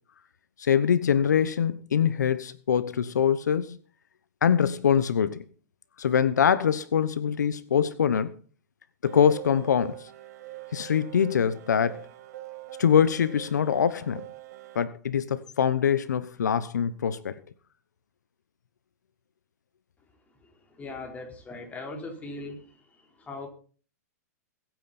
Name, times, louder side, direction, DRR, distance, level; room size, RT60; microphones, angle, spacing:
voice 1, 0.6-3.8 4.4-5.4 6.0-8.4 9.0-10.0 10.7-12.0 12.8-14.2 14.7-17.3, left 8 dB, 85° left, 1.0 m, -24 dB
sound 1, 9.1-14.8, right 17 dB, 65° right, 1.7 m, -44 dB
voice 2, 20.8-22.6 23.2-23.5, left 2 dB, 15° left, 4.4 m, -39 dB
21.5 x 9.2 x 4.3 m
hypercardioid pair, 130°, 9 cm